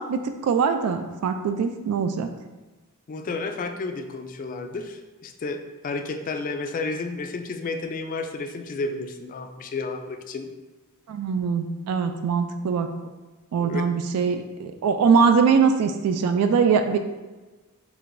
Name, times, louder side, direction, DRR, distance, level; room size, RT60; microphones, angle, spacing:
voice 1, 0.0-2.3 11.1-12.9 13.5-17.0, right 5 dB, 90° right, 8 dB, 0.3 m, -22 dB
voice 2, 3.1-5.6 5.8-10.5 13.6-13.8, left 3 dB, 40° left, 6 dB, 0.3 m, -31 dB
4.6 x 3.3 x 2.5 m, 1.2 s
head